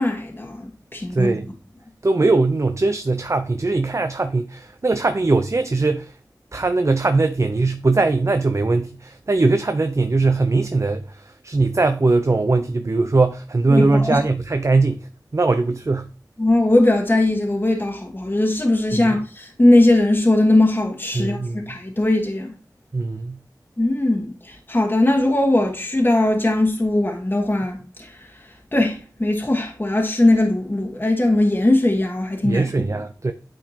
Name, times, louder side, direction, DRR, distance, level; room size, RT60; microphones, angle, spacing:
voice 1, 0.0-1.4 13.7-14.2 16.4-22.5 23.8-28.3 28.7-32.6, left 1 dB, 30° left, 1.4 m, -19 dB
voice 2, 1.1-1.5 2.0-6.1 6.5-16.1 18.9-19.1 21.1-21.6 22.9-23.4 32.4-33.3, right 3 dB, 45° right, 0.5 m, -20 dB
8.9 x 4.3 x 2.8 m
cardioid pair, 40°, 7 cm